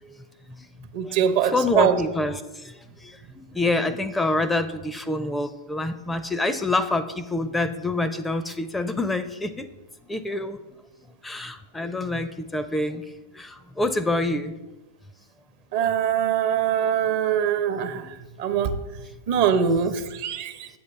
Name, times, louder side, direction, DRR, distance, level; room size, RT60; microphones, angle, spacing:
voice 1, 0.0-0.7 1.0-9.7 10.0-10.6 11.2-14.5 17.9-18.1, left 2 dB, 10° left, 11 dB, 0.4 m, -27 dB
voice 2, 0.9-1.9 15.7-18.7 19.3-20.7, right 8 dB, 55° right, 9 dB, 0.7 m, -23 dB
7.8 x 7.1 x 3.3 m, 1.1 s
hypercardioid pair, 105°, 0 cm